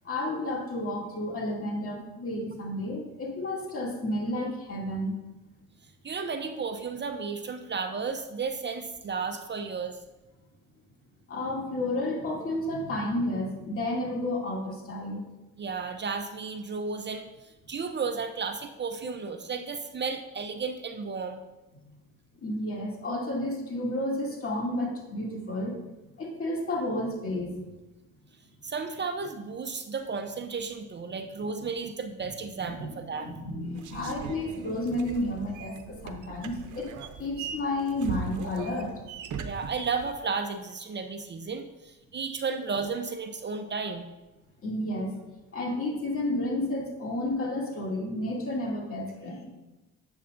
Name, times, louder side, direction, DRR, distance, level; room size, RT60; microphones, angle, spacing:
voice 1, 0.0-5.2 11.3-15.2 21.8-22.0 22.4-25.8 26.2-27.7 32.6-36.9 37.2-38.9 44.6-45.1 45.5-49.5, left 1 dB, 45° left, -2 dB, 2.5 m, -31 dB
voice 2, 6.0-10.0 15.6-17.3 17.7-21.4 28.6-33.3 39.4-44.1, right 5 dB, 35° right, 7 dB, 0.6 m, -33 dB
sound 1, 33.7-40.2, right 6 dB, 75° right, 0.8 m, -40 dB
10.0 x 7.9 x 2.6 m, 1.1 s
cardioid pair, 90°, 30 cm